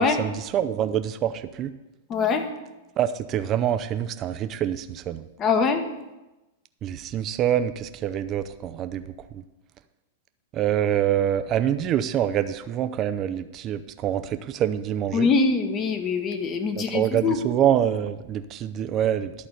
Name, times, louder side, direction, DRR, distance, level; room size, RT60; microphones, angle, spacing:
voice 1, 0.0-1.7 3.0-5.3 6.8-9.4 10.5-15.3 16.7-19.5, right 10 dB, 35° right, 11 dB, 0.5 m, -26 dB
voice 2, 2.1-2.5 5.4-5.8 15.1-17.4, left 4 dB, 30° left, 7 dB, 1.2 m, -23 dB
11.5 x 4.2 x 6.5 m, 1.0 s
hypercardioid pair, 115°, 0 cm